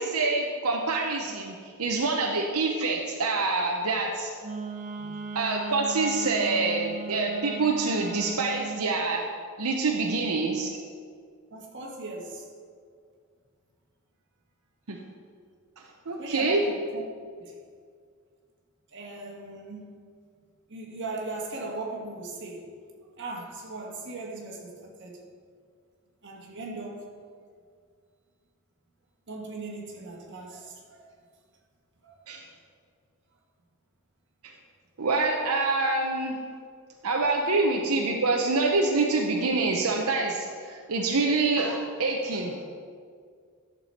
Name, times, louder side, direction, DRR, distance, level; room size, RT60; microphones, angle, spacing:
voice 1, 0.0-4.3 5.3-9.3 9.6-10.8 14.9-15.0 16.1-16.6 32.3-32.4 34.4-34.5 35.0-36.4 37.0-42.7, right 3 dB, 80° right, 0 dB, 0.8 m, -26 dB
Wind instrument woodwind instrument, 4.4-8.8, right 3 dB, 35° right, 0.6 m, -37 dB
voice 2, 11.5-12.5 16.2-17.0 17.4-17.6 18.9-19.9 20.7-22.7 23.2-25.2 26.2-27.0 29.3-31.1 32.0-32.1, right 2 dB, 55° right, 0 dB, 1.5 m, -38 dB
11.0 x 6.9 x 4.3 m, 2.1 s
head